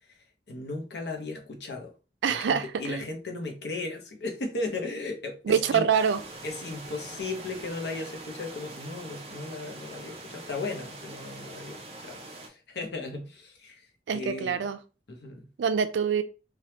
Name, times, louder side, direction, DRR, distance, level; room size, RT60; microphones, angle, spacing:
voice 1, 0.0-1.9 2.3-5.9 6.4-14.6 15.1-15.5, left 3 dB, 70° left, 0.7 m, -36 dB
voice 2, 2.2-3.0 5.5-6.2 14.1-14.8 15.6-16.2, right 7 dB, 85° right, 0.4 m, -25 dB
sound 1, 5.9-12.5, right 2 dB, 35° right, 0.6 m, -43 dB
3.2 x 2.3 x 2.8 m
head